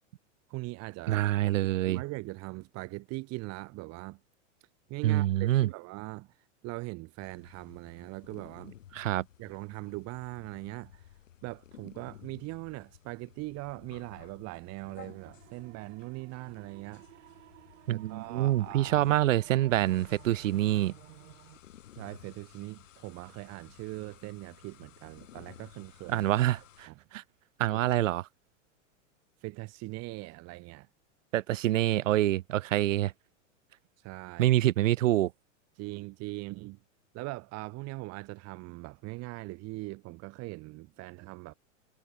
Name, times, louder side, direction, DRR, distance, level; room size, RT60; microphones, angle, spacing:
voice 1, 0.5-1.3 1.6-4.2 4.9-6.3 6.6-8.7 9.4-11.1 11.4-17.0 17.9-19.1 22.0-26.5 26.9-27.0 27.7-27.8 29.4-30.9 34.0-34.5 35.8-36.8 37.1-41.5, right 23 dB, 45° right, 2.1 m, -41 dB
voice 2, 1.1-2.0 5.0-5.7 8.9-9.2 17.9-20.9 26.1-27.2 27.6-28.2 31.3-33.1 34.4-35.3, right 14 dB, 85° right, 0.9 m, -26 dB
sound 1, 7.2-26.9, left 11 dB, 85° left, 2.7 m, -55 dB
sound 2, 14.8-21.6, right 17 dB, 65° right, 1.9 m, -55 dB
hypercardioid pair, 125°, 37 cm